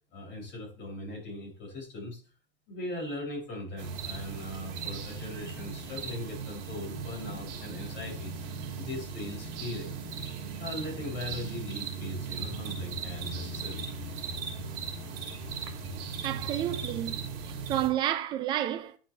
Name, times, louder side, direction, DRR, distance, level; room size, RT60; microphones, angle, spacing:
voice 1, 0.1-2.2 2.7-8.3 8.7-9.9 10.6-13.8, left 1 dB, 35° left, 5.1 m, -39 dB
sound 1, 3.8-17.9, right 5 dB, 40° right, 3.2 m, -38 dB
voice 2, 16.2-19.0, right 12 dB, 15° right, 0.4 m, -31 dB
10.0 x 6.1 x 3.3 m
supercardioid pair, 155°, 31 cm